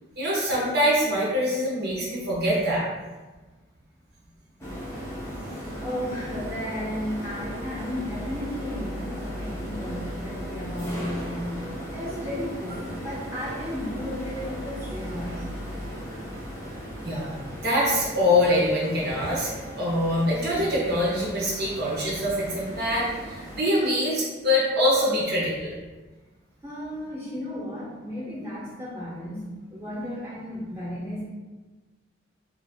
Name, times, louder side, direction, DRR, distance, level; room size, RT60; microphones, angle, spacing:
voice 1, 0.2-2.9 17.0-19.5 19.8-25.7, left 1 dB, 50° right, -5 dB, 0.8 m, -24 dB
sound 1, 4.6-23.6, equal, 15° left, 0.7 m, -36 dB
voice 2, 5.7-15.5 26.6-29.4 29.7-31.2, equal, 15° right, -7 dB, 1.0 m, -34 dB
3.2 x 2.6 x 3.4 m, 1.3 s
head